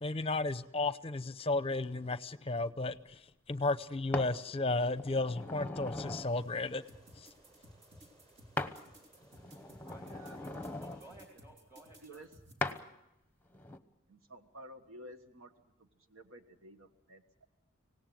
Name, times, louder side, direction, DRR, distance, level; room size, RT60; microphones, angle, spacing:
voice 1, 0.0-3.0 3.5-6.8, left 2 dB, 30° left, 14 dB, 0.7 m, -33 dB
sound 1, 4.1-4.3 5.0-6.3 8.6-8.8 9.2-11.0 12.6-12.8 13.5-13.8, left 2 dB, 10° left, 1.0 m, -39 dB
sound 2, 6.0-11.2, right 1 dB, 30° right, 6.3 m, -65 dB
sound 3, 6.9-12.8, equal, 60° right, 2.9 m, -57 dB
voice 2, 9.5-10.5 10.8-12.2 12.6-12.9, right 1 dB, 15° right, 1 dB, 2.7 m, -57 dB
voice 3, 14.1-15.5 15.8-17.5, right 1 dB, 75° right, 7 dB, 1.4 m, -53 dB
25.5 x 18.0 x 7.7 m, 0.90 s
head